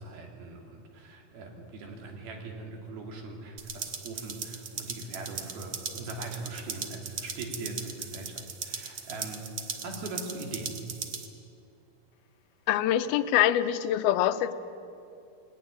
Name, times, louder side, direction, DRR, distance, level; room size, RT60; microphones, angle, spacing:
voice 1, 0.0-10.8, right 2 dB, 75° right, 2 dB, 4.6 m, -41 dB
sound 1, 3.6-11.3, right 7 dB, 55° right, 2.1 m, -38 dB
voice 2, 12.7-14.5, left 12 dB, 90° left, 12 dB, 2.6 m, -24 dB
19.5 x 18.0 x 10.0 m, 2.5 s
omnidirectional pair, 4.4 m